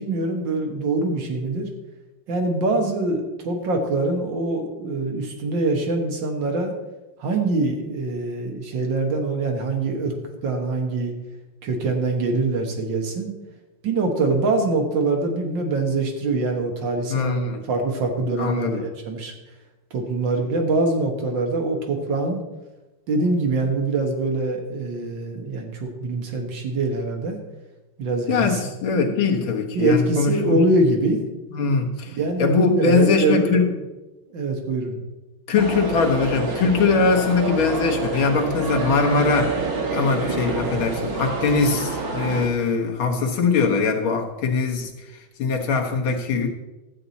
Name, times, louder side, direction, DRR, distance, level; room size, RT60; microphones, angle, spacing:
voice 1, 0.0-1.7 2.3-6.7 7.2-10.2 10.4-11.1 11.6-13.3 13.8-19.3 19.9-22.4 23.1-27.4 28.0-28.6 28.9-29.1 29.7-31.2 32.1-33.8 34.3-35.0, right 2 dB, 65° right, 3 dB, 2.1 m, -24 dB
voice 2, 17.1-17.6 18.4-18.8 28.3-30.6 31.5-33.7 35.5-39.6 39.9-44.9 45.4-46.5, left 4 dB, 90° left, 2 dB, 2.1 m, -21 dB
sound 1, 35.6-42.5, right 3 dB, 50° right, 1.7 m, -27 dB
12.5 x 8.2 x 4.1 m, 1.1 s
omnidirectional pair, 2.2 m